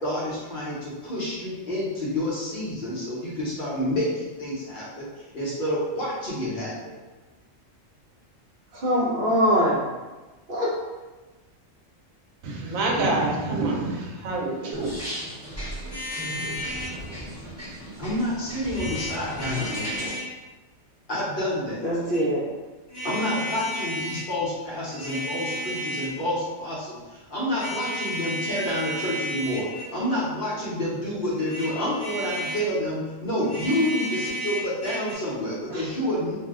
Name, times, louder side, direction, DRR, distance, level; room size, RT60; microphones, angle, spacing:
voice 1, 0.0-5.1 5.3-6.7 18.0-20.1 21.1-21.8 23.0-36.3, left 1 dB, 45° left, -8 dB, 0.9 m, -28 dB
voice 2, 8.7-9.8 10.5-10.7 21.8-22.4 35.7-35.8, equal, 55° right, -6 dB, 0.7 m, -23 dB
voice 3, 12.4-14.9, right 2 dB, 90° right, 0 dB, 1.0 m, -26 dB
sound 1, 14.7-20.2, equal, 15° right, 0.7 m, -36 dB
sound 2, 15.9-17.0 18.7-20.3 21.8-22.2 22.9-24.3 24.8-26.2 27.5-30.0 31.3-32.7 33.4-35.1, equal, 15° left, 0.9 m, -33 dB
2.6 x 2.1 x 3.5 m, 1.2 s
omnidirectional pair, 1.4 m